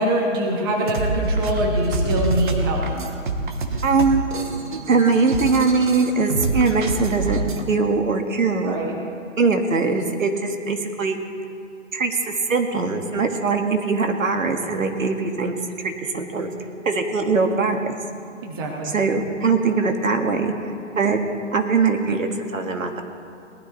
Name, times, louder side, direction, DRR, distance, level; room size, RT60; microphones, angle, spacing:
voice 1, 0.0-2.8 8.6-8.9 18.4-18.9, equal, 15° right, 0 dB, 1.1 m, -24 dB
sound 1, 0.7-7.6, right 2 dB, 40° right, 1.1 m, -26 dB
voice 2, 3.8-4.2 4.9-8.8 9.4-11.2 11.9-16.5 16.9-17.9 18.8-20.5 21.0-21.2 21.5-23.0, right 4 dB, 80° right, 4 dB, 1.8 m, -21 dB
18.5 x 12.0 x 4.1 m, 2.4 s
hypercardioid pair, 160°, 39 cm